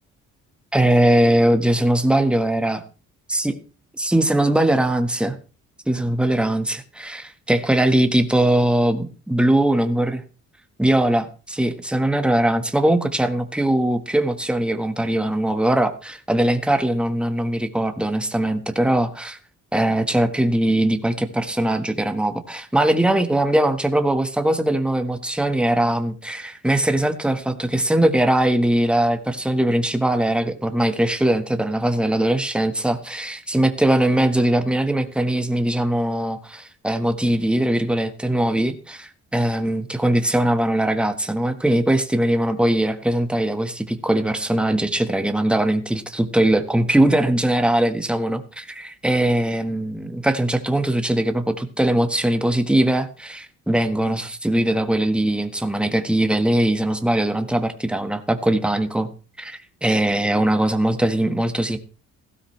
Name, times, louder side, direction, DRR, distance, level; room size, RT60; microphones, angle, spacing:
voice 1, 0.7-2.8 3.3-3.6 4.0-5.4 5.9-10.2 10.8-19.4 19.7-59.1 59.4-61.8, right 1 dB, 5° right, 8 dB, 1.4 m, -21 dB
16.0 x 12.5 x 3.2 m, 0.36 s
cardioid pair, 90°, 30 cm